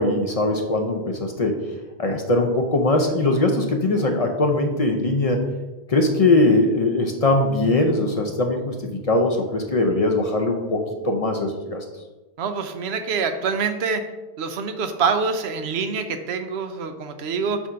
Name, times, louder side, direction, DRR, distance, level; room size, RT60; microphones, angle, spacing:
voice 1, 0.0-1.7 2.0-5.4 5.9-11.8, left 2 dB, 40° left, 3 dB, 0.6 m, -21 dB
voice 2, 12.4-14.0 14.4-17.6, right 5 dB, 80° right, 8 dB, 0.9 m, -25 dB
7.0 x 2.5 x 5.6 m, 1.1 s
omnidirectional pair, 1.1 m